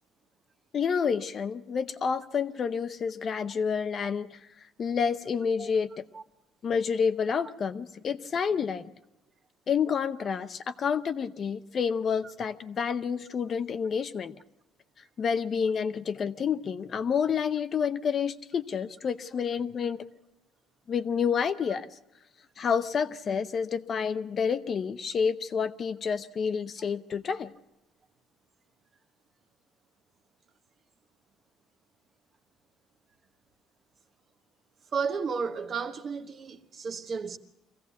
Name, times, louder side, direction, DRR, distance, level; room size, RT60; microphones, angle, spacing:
voice 1, 0.7-4.4 4.8-6.0 6.6-8.9 9.7-14.3 15.2-20.0 20.9-21.9 22.6-27.5, left 6 dB, 35° left, 0.7 m, -29 dB
voice 2, 34.9-37.4, right 5 dB, 30° right, 1.2 m, -33 dB
24.0 x 16.5 x 8.3 m
cardioid pair, 155°, 0 cm